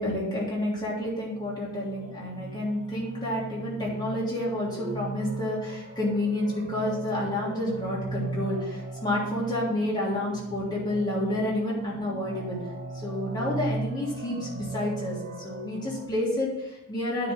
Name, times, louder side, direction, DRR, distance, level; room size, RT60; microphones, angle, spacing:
voice 1, 0.0-12.6 12.9-17.3, left 1 dB, 20° left, -6 dB, 3.2 m, -29 dB
sound 1, 1.3-16.1, right 2 dB, 40° right, 1.0 m, -38 dB
9.6 x 4.3 x 6.8 m, 0.94 s
head